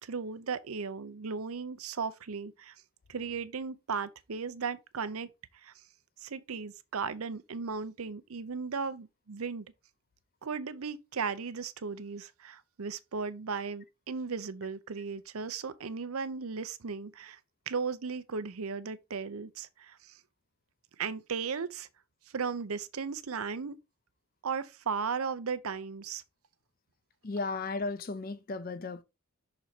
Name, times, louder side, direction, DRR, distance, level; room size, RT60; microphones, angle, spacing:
voice 1, 0.0-2.8 3.1-5.3 5.6-5.7 6.2-9.7 10.4-17.4 17.7-20.2 21.0-21.9 22.3-23.8 24.4-26.2, right 5 dB, 85° right, 0.6 m, -36 dB
voice 2, 27.2-29.0, left 3 dB, 40° left, 0.6 m, -35 dB
6.2 x 4.0 x 4.3 m
head